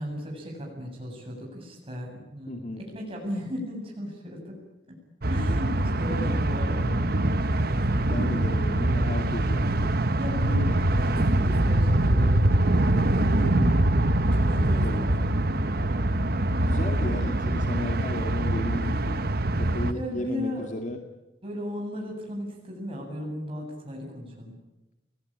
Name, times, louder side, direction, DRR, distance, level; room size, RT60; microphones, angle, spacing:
voice 1, 0.0-4.6 4.9-5.0 5.3-8.5 10.2-12.5 14.2-15.6 17.5-17.7 19.5-20.7 21.4-24.6, left 1 dB, 30° right, -1 dB, 7.9 m, -36 dB
voice 2, 2.5-2.8 8.1-10.0 13.4-13.8 14.8-15.1 16.6-21.0, left 1 dB, 45° left, 4 dB, 2.2 m, -34 dB
sound 1, 5.2-19.9, right 1 dB, 60° right, 1.3 m, -24 dB
29.5 x 21.0 x 8.8 m, 0.98 s
head